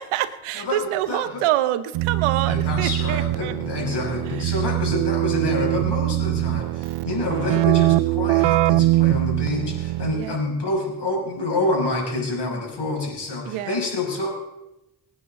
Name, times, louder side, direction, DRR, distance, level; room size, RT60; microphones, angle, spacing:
voice 1, 0.0-3.6 4.2-4.6 10.1-10.4 13.5-13.8, right 13 dB, 85° right, 12 dB, 1.0 m, -26 dB
voice 2, 1.1-1.4 2.4-14.3, left 2 dB, 55° left, 0 dB, 6.4 m, -27 dB
Keyboard (musical), 1.9-10.4, right 18 dB, 60° right, 0.5 m, -22 dB
25.0 x 9.4 x 3.8 m, 0.90 s
supercardioid pair, 60°, 49 cm